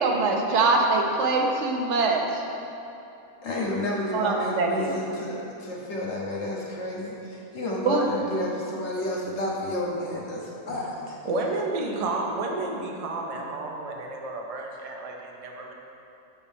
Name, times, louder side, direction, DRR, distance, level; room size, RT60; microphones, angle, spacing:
voice 1, 0.0-2.4 4.1-5.0 7.9-8.1, right 3 dB, 60° right, 1 dB, 1.0 m, -23 dB
voice 2, 3.4-11.2, left 1 dB, 55° left, -3 dB, 1.3 m, -31 dB
voice 3, 11.2-15.7, right 2 dB, 40° right, 1 dB, 0.5 m, -31 dB
7.3 x 7.1 x 3.5 m, 2.9 s
omnidirectional pair, 1.5 m